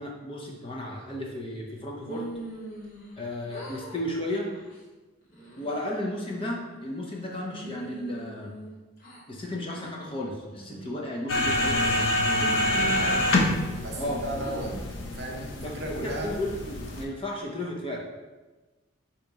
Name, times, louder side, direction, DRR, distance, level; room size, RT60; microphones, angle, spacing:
voice 1, 0.0-2.3 3.2-4.5 5.5-8.6 9.3-13.2 14.0-14.2 15.5-18.0, left 1 dB, 25° left, -1 dB, 0.6 m, -34 dB
sound 1, 2.1-3.2 3.5-4.0 4.4-4.8 5.3-5.8 6.3-7.1 7.5-9.2 9.7-9.9 10.5-10.9 11.5-11.9 12.3-13.9 14.4-14.9, right 2 dB, 45° left, 1.2 m, -41 dB
sound 2, 11.3-17.0, left 1 dB, 65° left, 0.6 m, -27 dB
voice 2, 12.5-13.2 13.8-14.7 15.1-16.3, right 1 dB, 55° right, 0 dB, 0.7 m, -36 dB
3.9 x 2.8 x 4.7 m, 1.2 s
head